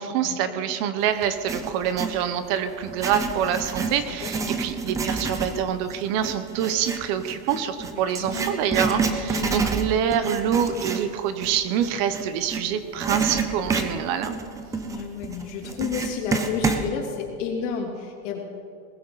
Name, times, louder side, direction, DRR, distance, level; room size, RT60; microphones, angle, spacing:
voice 1, 0.0-14.4, right 9 dB, 45° right, 11 dB, 0.9 m, -26 dB
Writing, 1.2-2.2 2.8-12.6 13.0-16.9, right 4 dB, 10° right, 0.4 m, -29 dB
voice 2, 3.9-4.5 7.9-8.5 9.3-9.5 14.8-18.4, left 6 dB, 60° left, -1 dB, 3.5 m, -31 dB
20.0 x 14.5 x 4.0 m, 2.4 s
supercardioid pair, 160°, 42 cm